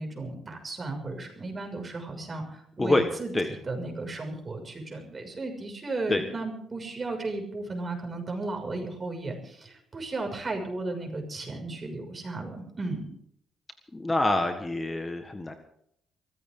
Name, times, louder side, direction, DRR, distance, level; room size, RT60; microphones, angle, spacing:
voice 1, 0.0-13.1, right 2 dB, 30° right, 3 dB, 6.4 m, -35 dB
voice 2, 13.9-15.5, left 2 dB, 20° left, 7 dB, 1.6 m, -26 dB
23.5 x 15.0 x 3.9 m, 0.70 s
cardioid pair, 90°, 0 cm